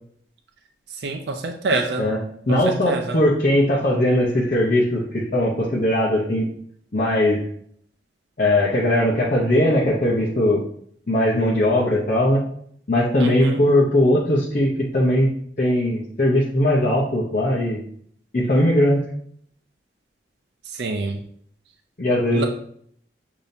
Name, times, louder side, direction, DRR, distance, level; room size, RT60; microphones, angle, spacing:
voice 1, 1.0-2.0 2.5-2.6 2.9-3.2 13.2-13.6 20.8-21.2 22.3-22.4, right 3 dB, 75° right, 3 dB, 0.4 m, -26 dB
voice 2, 2.5-6.5 6.9-7.4 8.4-10.6 11.1-12.4 12.9-15.3 15.6-17.8 18.3-19.0 22.0-22.4, left 1 dB, 50° left, -6 dB, 0.7 m, -19 dB
6.8 x 2.7 x 2.6 m, 0.64 s
head